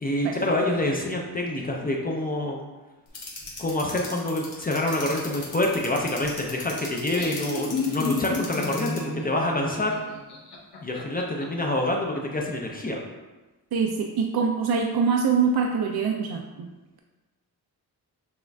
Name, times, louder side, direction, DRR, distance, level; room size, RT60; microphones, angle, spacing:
voice 1, 0.0-2.6 3.6-9.9 10.8-13.0, left 1 dB, 25° left, 0 dB, 0.4 m, -27 dB
sound 1, 3.1-9.0, left 4 dB, 40° left, 1.1 m, -37 dB
Laughter, 6.9-11.4, left 3 dB, 80° left, 1.1 m, -31 dB
voice 2, 13.7-16.7, right 5 dB, 70° right, 2 dB, 0.5 m, -24 dB
6.2 x 2.4 x 3.3 m, 1.2 s
wide cardioid pair, 175°, 39 cm